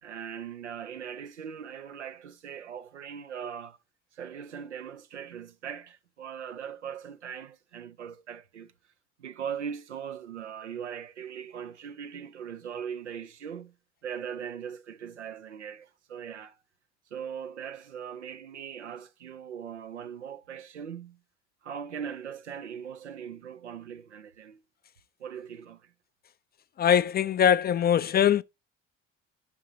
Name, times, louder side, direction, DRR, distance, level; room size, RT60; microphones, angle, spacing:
voice 1, 0.0-3.8 4.1-8.7 9.2-13.7 14.0-16.6 17.1-21.2 21.6-24.6 25.2-25.9, right 8 dB, 90° right, 0.5 m, -40 dB
voice 2, 26.8-28.4, left 9 dB, 30° left, 0.4 m, -22 dB
10.5 x 5.5 x 2.7 m
figure-of-eight pair, 50°, 34 cm